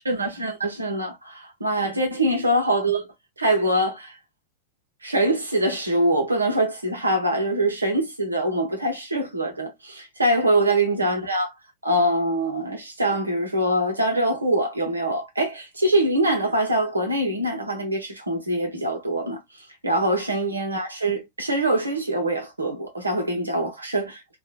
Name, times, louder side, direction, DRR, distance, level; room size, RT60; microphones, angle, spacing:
voice 1, 0.0-3.0 3.4-4.1 5.0-11.5 11.8-19.4 19.8-24.2, right 1 dB, 80° right, 0.9 m, -24 dB
2.9 x 2.4 x 2.3 m
figure-of-eight pair, 90°, 0 cm